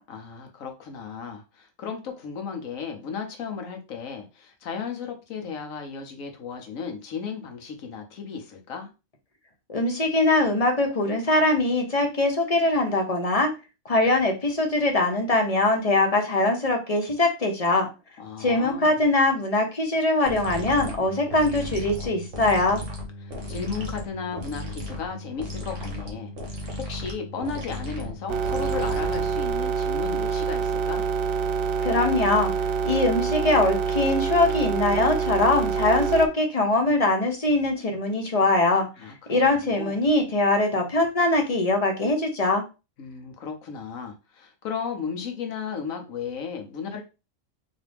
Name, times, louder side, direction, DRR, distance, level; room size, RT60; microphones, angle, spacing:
voice 1, 0.1-8.9 18.2-19.0 23.2-31.0 39.0-39.9 43.0-47.0, left 6 dB, 80° left, 4 dB, 1.3 m, -35 dB
voice 2, 9.7-13.5 13.8-17.9 18.4-22.8 31.8-32.5 32.9-38.9 39.3-42.6, left 2 dB, 35° left, 3 dB, 0.7 m, -22 dB
sound 1, 20.2-29.5, left 1 dB, 65° right, 1.5 m, -35 dB
sound 2, 28.3-36.3, right 6 dB, 90° right, 1.0 m, -26 dB
4.0 x 2.8 x 3.4 m, 0.29 s
omnidirectional pair, 1.4 m